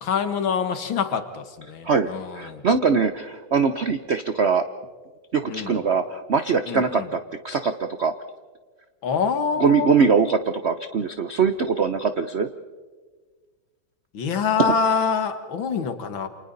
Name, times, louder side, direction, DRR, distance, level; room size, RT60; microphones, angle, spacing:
voice 1, 0.0-2.6 5.4-5.8 6.7-7.1 9.0-10.0 14.1-16.3, left 6 dB, 70° left, 9 dB, 2.2 m, -25 dB
voice 2, 1.8-4.6 5.3-7.2 7.4-8.1 9.6-12.5, right 5 dB, 60° right, 9 dB, 0.6 m, -22 dB
29.5 x 27.5 x 4.1 m, 1.5 s
omnidirectional pair, 2.3 m